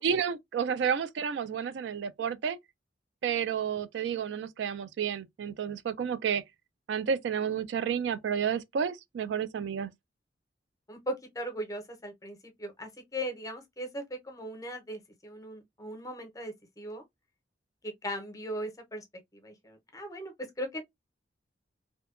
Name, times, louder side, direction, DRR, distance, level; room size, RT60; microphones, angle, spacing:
voice 1, 0.0-2.6 3.2-6.4 6.9-9.9, right 7 dB, 70° right, 0.3 m, -31 dB
voice 2, 10.9-17.0 17.8-19.0 19.4-20.8, equal, 20° left, 0.6 m, -38 dB
2.6 x 2.1 x 2.3 m
head